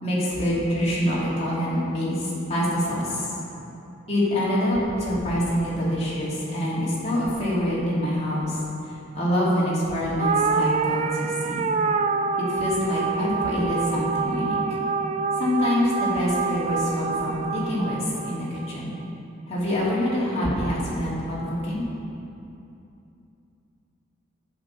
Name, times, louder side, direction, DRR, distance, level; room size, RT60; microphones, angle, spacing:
voice 1, 0.0-3.4 4.1-8.6 9.1-11.7 12.4-14.6 15.4-18.9 19.5-21.8, equal, 30° left, -8 dB, 2.7 m, -25 dB
sound 1, 10.2-18.8, right 4 dB, 30° right, 0.3 m, -26 dB
11.0 x 5.3 x 7.1 m, 2.7 s
head